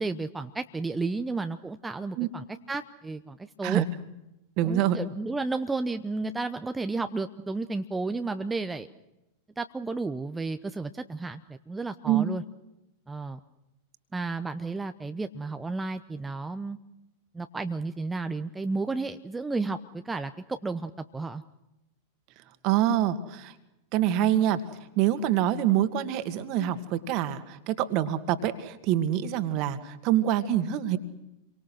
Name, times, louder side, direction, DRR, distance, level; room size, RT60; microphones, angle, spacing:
voice 1, 0.0-3.8 4.6-8.9 9.6-12.4 13.1-13.4 14.1-16.8 17.3-19.8 20.0-21.4, right 3 dB, 10° right, 9 dB, 0.9 m, -32 dB
voice 2, 4.6-5.0 12.0-12.3 22.6-23.5 23.9-24.6 25.0-31.0, right 11 dB, 40° right, 10 dB, 2.1 m, -25 dB
29.0 x 24.0 x 6.3 m, 0.93 s
figure-of-eight pair, 90°, 0 cm